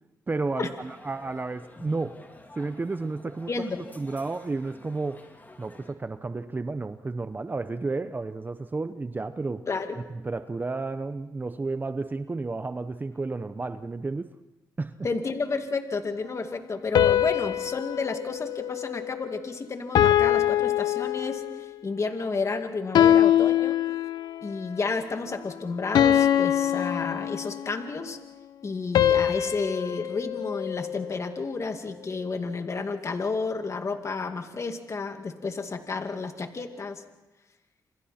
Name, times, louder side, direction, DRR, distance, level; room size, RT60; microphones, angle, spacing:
voice 1, 0.3-2.3 2.6-3.5 4.0-5.2 5.6-9.7 10.1-14.3 14.8-14.9, right 3 dB, 25° right, 11 dB, 0.8 m, -32 dB
sound 1, 0.8-5.9, left 2 dB, 25° left, 3.4 m, -50 dB
voice 2, 3.5-3.8 9.7-10.0 15.0-23.8 24.4-28.2 28.6-37.0, left 4 dB, 45° left, 6 dB, 2.3 m, -31 dB
sound 2, 17.0-19.4 20.0-21.7 23.0-24.5 26.0-27.8 29.0-31.3, left 11 dB, 85° left, 0.8 m, -23 dB
28.0 x 27.0 x 4.4 m, 0.99 s
cardioid pair, 75°, 7 cm